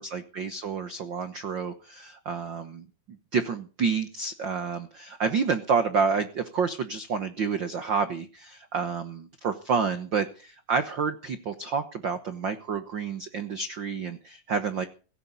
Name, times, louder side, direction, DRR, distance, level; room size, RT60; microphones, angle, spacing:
voice 1, 0.0-2.8 3.3-14.9, right 5 dB, 75° right, 10 dB, 1.0 m, -29 dB
16.5 x 16.5 x 4.0 m, 0.37 s
omnidirectional pair, 3.9 m